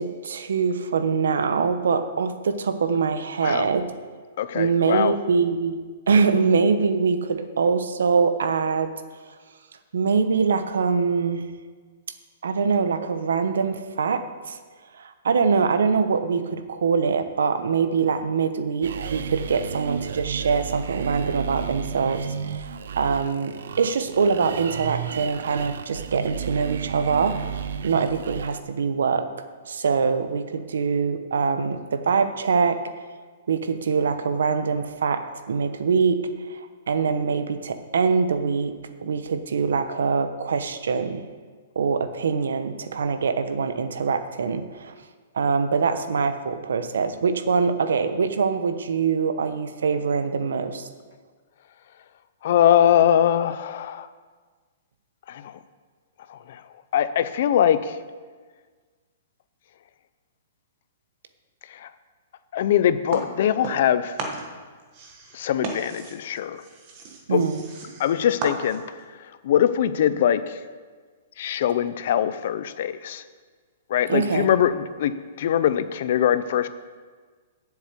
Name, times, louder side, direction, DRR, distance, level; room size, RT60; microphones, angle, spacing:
voice 1, 0.0-3.9 4.5-5.8 6.1-8.9 9.9-11.4 12.4-14.2 14.5-14.6 15.0-29.3 29.6-32.8 33.5-36.2 36.5-38.7 39.0-41.2 41.7-44.9 45.3-50.9 67.3-67.6 74.1-74.5, right 5 dB, 85° right, 9 dB, 1.0 m, -23 dB
voice 2, 4.4-5.1 52.4-54.1 55.3-55.5 56.3-56.6 56.9-58.0 61.7-61.9 62.5-64.1 65.3-66.6 67.3-67.4 68.0-68.8 69.4-70.6 71.4-73.2 73.9-76.7, left 10 dB, 40° left, 12 dB, 0.5 m, -22 dB
sound 1, 18.8-28.6, right 7 dB, 60° right, 0.5 m, -33 dB
sound 2, 63.1-63.9 64.2-69.0, right 3 dB, 25° right, 1.2 m, -35 dB
7.9 x 7.1 x 8.4 m, 1.5 s
hypercardioid pair, 180°, 0 cm